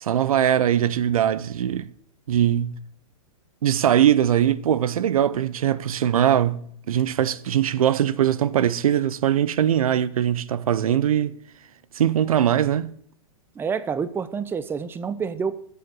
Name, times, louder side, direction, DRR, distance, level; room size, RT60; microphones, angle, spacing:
voice 1, 0.0-1.9 2.3-2.8 3.6-11.3 11.9-12.9, right 10 dB, 80° right, 0.7 m, -21 dB
voice 2, 13.6-15.6, right 6 dB, 10° right, 0.6 m, -28 dB
8.6 x 7.0 x 7.7 m
hypercardioid pair, 125°, 18 cm